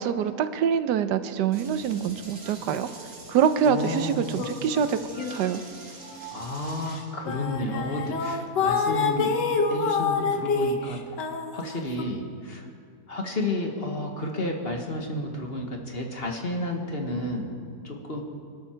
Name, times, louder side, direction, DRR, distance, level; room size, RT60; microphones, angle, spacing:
voice 1, 0.0-2.9 3.3-5.0 5.3-5.6, right 8 dB, 80° right, 11 dB, 1.3 m, -25 dB
sound 1, 1.5-8.4, right 3 dB, 50° right, 2.2 m, -45 dB
voice 2, 3.6-4.4 6.3-9.3 9.7-11.0 11.5-12.7 13.1-17.5 17.8-18.2, left 1 dB, 35° left, 2 dB, 1.7 m, -31 dB
sound 2, 4.4-5.7 6.1-6.3 7.0-7.1 7.3-12.0, left 4 dB, 80° left, 1.8 m, -27 dB
25.0 x 12.5 x 4.5 m, 2.2 s
omnidirectional pair, 1.8 m